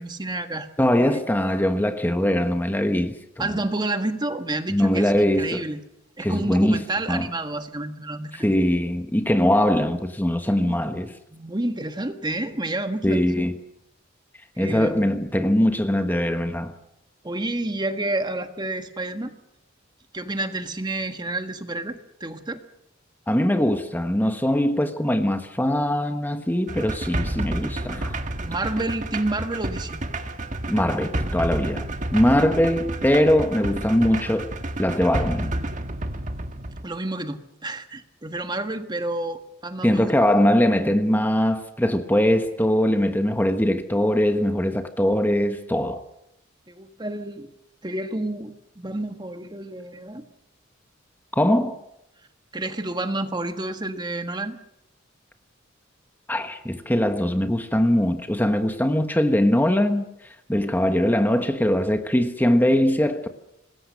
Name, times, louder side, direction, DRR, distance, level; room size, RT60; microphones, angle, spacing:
voice 1, 0.0-0.7 1.0-1.2 3.4-5.8 6.2-8.5 10.5-10.9 11.3-13.5 14.5-15.1 17.2-19.3 20.1-22.6 28.4-30.0 36.8-40.1 46.7-47.5 47.8-50.2 52.5-54.6, right 2 dB, 20° right, 1.5 m, -30 dB
voice 2, 0.8-3.6 4.7-5.6 6.2-7.3 8.3-11.1 13.0-13.6 14.6-16.7 23.3-28.1 30.7-34.5 34.8-35.5 39.8-46.0 51.3-51.8 56.3-60.1 60.5-63.3, left 1 dB, 10° left, 1.3 m, -21 dB
sound 1, 26.7-36.8, right 1 dB, 40° right, 1.6 m, -30 dB
26.0 x 20.0 x 6.5 m
head